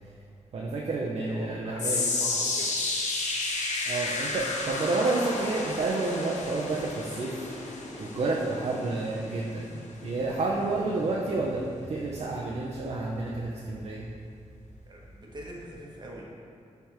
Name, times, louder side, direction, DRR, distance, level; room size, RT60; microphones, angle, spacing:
voice 1, 0.5-2.0 3.9-7.4 8.0-9.7 10.0-14.0, right 3 dB, 60° right, -3 dB, 0.6 m, -30 dB
voice 2, 1.3-2.8 14.8-16.2, right 1 dB, 40° right, -2 dB, 1.0 m, -42 dB
sound 1, 1.8-14.1 14.4-14.8 15.4-15.5, left 3 dB, 85° left, 0.7 m, -33 dB
10.0 x 3.4 x 3.0 m, 2.3 s
wide cardioid pair, 125°, 12 cm